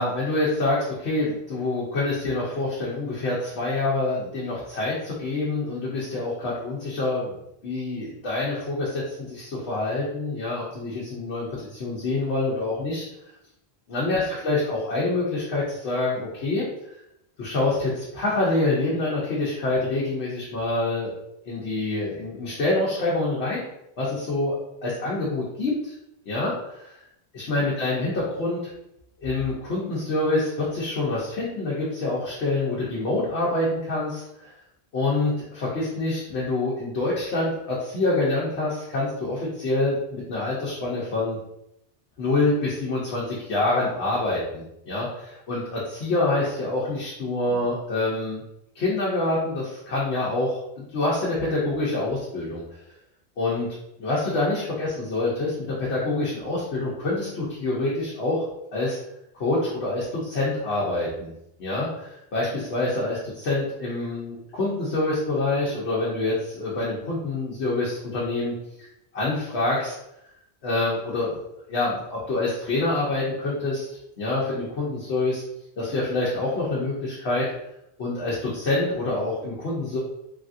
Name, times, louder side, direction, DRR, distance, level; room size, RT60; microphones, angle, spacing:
voice 1, 0.0-7.4 7.6-13.1 13.9-16.6 17.4-21.1 21.4-23.6 24.0-24.6 24.8-25.9 26.3-26.9 27.3-28.6 29.2-34.5 34.9-41.4 42.2-48.4 48.7-52.6 53.4-53.7 54.0-58.4 58.7-59.0 59.3-61.3 61.6-68.5 69.1-69.9 70.6-71.4 71.7-75.4 75.8-77.5 78.0-80.0, left 2 dB, 85° left, -6 dB, 1.0 m, -26 dB
3.3 x 2.5 x 2.5 m, 0.81 s
omnidirectional pair, 1.1 m